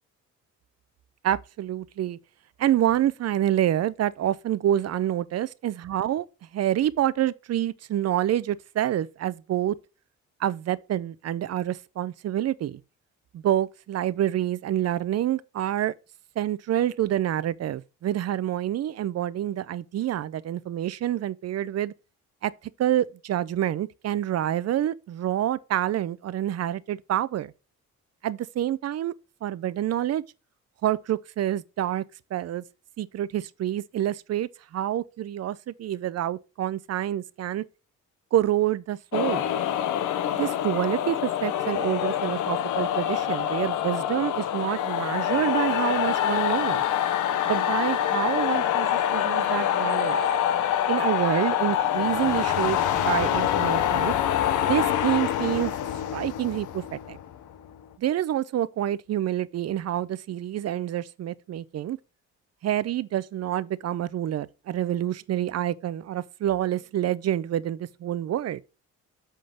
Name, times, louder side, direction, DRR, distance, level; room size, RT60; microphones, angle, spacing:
voice 1, 1.2-2.2 2.6-6.3 6.5-9.8 10.4-12.8 13.3-15.9 16.4-21.9 22.4-22.5 22.8-27.5 28.2-29.1 29.4-30.2 30.8-32.0 32.3-32.6 33.0-37.6 38.3-39.4 40.3-46.8 47.5-50.2 50.9-54.1 54.7-55.7 56.1-57.2 58.0-62.0 62.6-68.6, right 12 dB, 55° right, 0.6 m, -27 dB
sound 1, 39.1-57.7, left 10 dB, 80° left, 0.9 m, -25 dB
7.8 x 3.8 x 6.3 m
cardioid pair, 90°, 30 cm